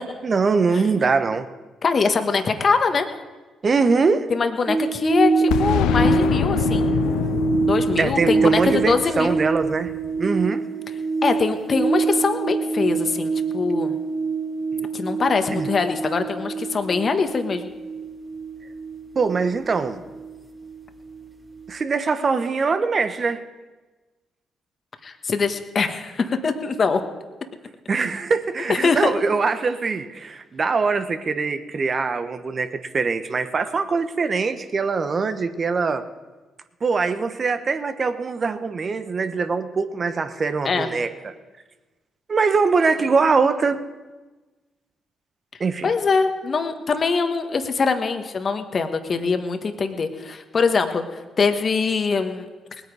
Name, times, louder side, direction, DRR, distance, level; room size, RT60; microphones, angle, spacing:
voice 1, 0.2-1.5 3.6-4.3 8.0-9.9 10.2-10.6 15.5-15.7 19.1-20.0 21.7-23.4 27.9-36.0 36.8-41.3 42.3-43.8 45.6-45.9, right 4 dB, 45° right, 10 dB, 1.1 m, -22 dB
voice 2, 1.8-3.1 4.3-6.9 7.6-9.4 11.2-14.0 14.9-17.7 25.0-27.0 28.7-29.1 40.6-40.9 45.8-51.0 51.4-52.5, left 4 dB, 50° left, 7 dB, 1.4 m, -23 dB
sound 1, 4.7-21.2 21.5-21.6, right 4 dB, 25° right, 2.3 m, -25 dB
Boom, 5.5-10.2, left 12 dB, 80° left, 0.3 m, -25 dB
19.5 x 9.2 x 4.9 m, 1.2 s
hypercardioid pair, 50°, 0 cm